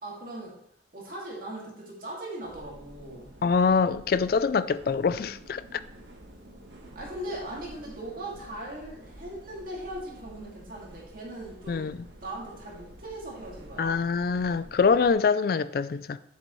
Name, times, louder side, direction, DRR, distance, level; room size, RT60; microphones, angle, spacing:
voice 1, 0.0-0.6 0.9-3.3 6.9-11.9 12.2-14.1, right 1 dB, 50° right, 2.3 m, -39 dB
sound 1, 2.4-15.1, right 1 dB, 75° right, 1.4 m, -49 dB
voice 2, 3.4-5.8 11.7-12.0 13.8-16.2, left 5 dB, 50° left, 0.3 m, -24 dB
7.9 x 7.4 x 3.1 m
head